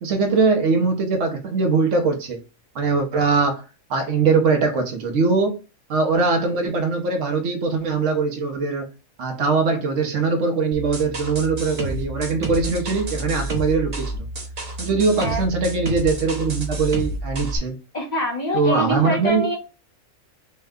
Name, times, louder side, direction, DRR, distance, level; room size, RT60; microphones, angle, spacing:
voice 1, 0.0-2.4 2.7-3.6 3.9-5.6 5.9-8.9 9.2-14.3 14.8-17.8 18.5-19.4, right 4 dB, 60° right, 1.1 m, -21 dB
sound 1, 10.7-17.6, right 1 dB, 35° right, 0.8 m, -30 dB
voice 2, 17.9-19.6, equal, 35° left, 1.0 m, -25 dB
4.4 x 2.2 x 3.6 m
omnidirectional pair, 1.5 m